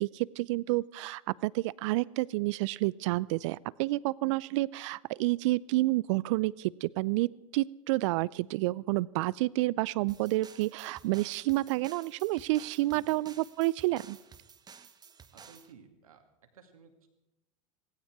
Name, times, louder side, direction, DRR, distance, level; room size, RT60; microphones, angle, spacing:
voice 1, 0.0-14.2, right 19 dB, 60° right, 23 dB, 0.5 m, -29 dB
sound 1, 10.1-15.7, right 6 dB, 20° right, 1.1 m, -54 dB
voice 2, 12.9-13.3 15.3-16.2 16.5-17.1, right 6 dB, 80° right, 5 dB, 2.4 m, -55 dB
17.5 x 16.0 x 4.7 m, 0.96 s
hypercardioid pair, 90°, 18 cm